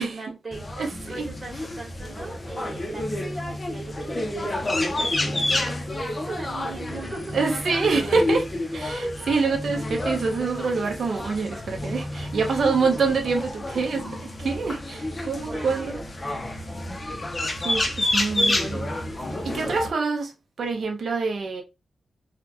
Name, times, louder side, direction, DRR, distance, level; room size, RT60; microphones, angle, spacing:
voice 1, 0.0-0.6 1.1-7.6 15.4-15.9 19.6-19.9, right 3 dB, 25° right, 1.4 m, -40 dB
sound 1, 0.5-19.9, left 1 dB, 20° left, 0.6 m, -29 dB
voice 2, 7.3-8.5 8.7-16.0 17.6-18.9 19.4-20.3 20.6-21.6, right 4 dB, 55° right, 0.7 m, -26 dB
3.8 x 2.2 x 2.8 m
wide cardioid pair, 165°, 0 cm